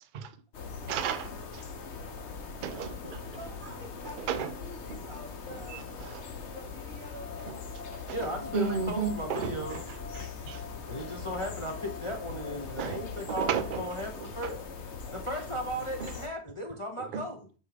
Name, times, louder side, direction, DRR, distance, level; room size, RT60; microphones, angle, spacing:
sound 1, 0.5-16.3, left 5 dB, 55° left, 1.0 m, -41 dB
voice 1, 0.9-1.6 2.6-3.2 4.2-4.5 4.9-5.0 5.7-6.2 7.5-7.6 7.9-9.8 10.1-10.6 12.8-13.8 14.4-14.5 16.0-16.1 17.1-17.2, right 7 dB, 60° right, 0.5 m, -34 dB
voice 2, 3.4-5.8 6.5-7.8, equal, 85° right, 3.7 m, -48 dB
sound 2, 7.1-14.2, left 6 dB, 40° right, 1.0 m, -47 dB
voice 3, 8.1-9.8 10.9-14.5 15.1-17.4, equal, 30° left, 0.6 m, -36 dB
8.1 x 3.7 x 3.3 m
omnidirectional pair, 1.5 m